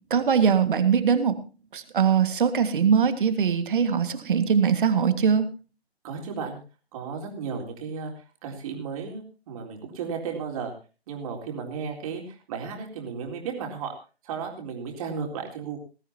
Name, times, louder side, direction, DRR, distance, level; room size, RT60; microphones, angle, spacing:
voice 1, 0.1-1.4 1.7-5.5, right 7 dB, 50° right, 10 dB, 1.9 m, -21 dB
voice 2, 6.0-6.6 6.9-8.1 8.4-10.7 11.1-13.9 14.2-15.8, right 6 dB, 35° right, 2 dB, 3.8 m, -34 dB
20.5 x 14.0 x 2.9 m, 0.33 s
figure-of-eight pair, 140°, 32 cm